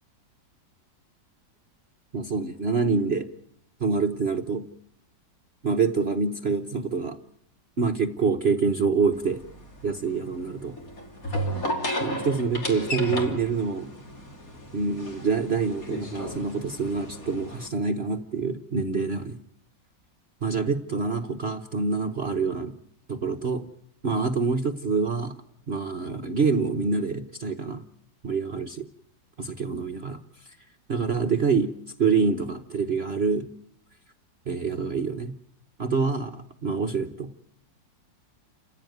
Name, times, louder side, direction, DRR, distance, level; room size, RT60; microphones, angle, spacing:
voice 1, 2.1-3.3 3.8-4.7 5.6-7.2 7.8-9.4 9.8-10.8 12.0-13.9 14.7-19.4 20.4-22.7 23.1-23.7 24.0-25.4 25.7-27.8 28.2-28.9 29.4-30.5 30.9-31.7 32.0-33.5 34.4-35.3 35.8-37.3, right 4 dB, 40° right, 5 dB, 1.2 m, -26 dB
sound 1, 9.1-17.7, equal, 50° left, 3.5 m, -34 dB
29.5 x 16.0 x 9.3 m, 0.73 s
omnidirectional pair, 2.0 m